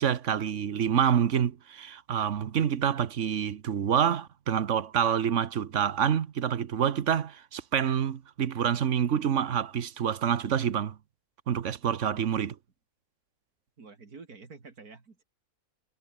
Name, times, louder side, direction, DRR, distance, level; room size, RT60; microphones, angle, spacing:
voice 1, 0.0-11.0 11.5-12.6, right 8 dB, 55° right, 1.3 m, -27 dB
voice 2, 11.8-12.4 13.8-15.2, right 4 dB, 90° right, 3.3 m, -49 dB
omnidirectional pair, 1.6 m